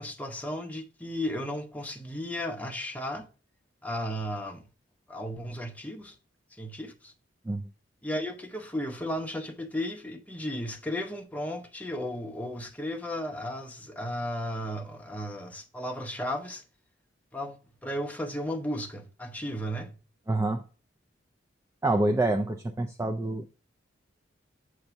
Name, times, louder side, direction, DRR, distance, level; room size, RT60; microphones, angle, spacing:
voice 1, 0.0-3.3 3.8-4.7 5.1-6.2 6.5-7.1 8.0-16.6 17.3-17.6 17.8-19.9, equal, 10° left, 0.7 m, -34 dB
voice 2, 20.3-20.6 21.8-23.5, right 2 dB, 15° right, 0.3 m, -27 dB
7.8 x 2.7 x 5.7 m
head